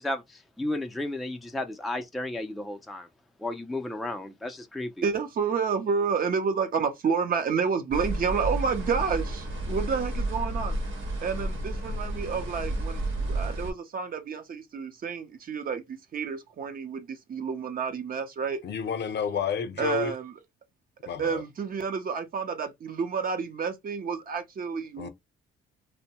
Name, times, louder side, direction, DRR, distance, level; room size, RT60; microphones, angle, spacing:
voice 1, 0.0-3.1 3.4-4.9, left 1 dB, ahead, 0.4 m, -33 dB
voice 2, 5.0-10.8 11.2-18.6 19.8-20.3 21.2-25.1, right 6 dB, 45° right, 0.6 m, -30 dB
sound 1, 7.9-13.7, right 1 dB, 80° right, 1.0 m, -31 dB
voice 3, 18.6-20.1 21.1-21.4 25.0-25.1, left 7 dB, 60° left, 0.6 m, -30 dB
2.6 x 2.1 x 2.8 m
cardioid pair, 90°, 20 cm